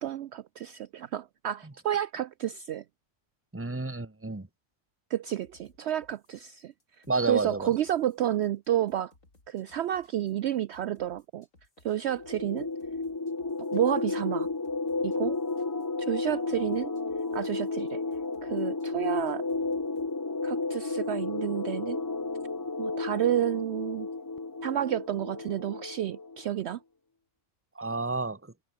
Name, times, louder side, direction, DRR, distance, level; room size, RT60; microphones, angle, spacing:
voice 1, 0.0-2.8 5.1-9.1 9.5-11.5 11.8-12.7 13.6-14.5 15.0-15.4 16.0-16.9 17.3-18.0 18.4-19.5 20.4-22.0 22.8-24.1 24.6-26.8, right 11 dB, 65° right, 0.8 m, -30 dB
voice 2, 3.5-4.5 7.1-7.7 27.7-28.5, right 3 dB, 10° right, 1.2 m, -30 dB
sound 1, 5.4-20.1, left 2 dB, 80° left, 5.3 m, -62 dB
sound 2, 12.1-26.4, left 3 dB, 20° left, 0.6 m, -32 dB
omnidirectional pair, 1.3 m